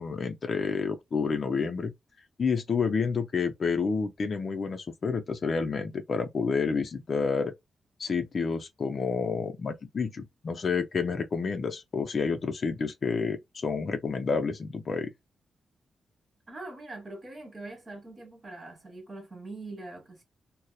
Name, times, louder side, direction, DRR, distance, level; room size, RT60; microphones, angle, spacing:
voice 1, 0.0-1.9 2.4-7.5 8.0-15.1, left 5 dB, 50° left, 0.4 m, -29 dB
voice 2, 16.5-20.2, right 2 dB, 35° right, 1.2 m, -43 dB
2.7 x 2.0 x 2.3 m
cardioid pair, 95°, 0 cm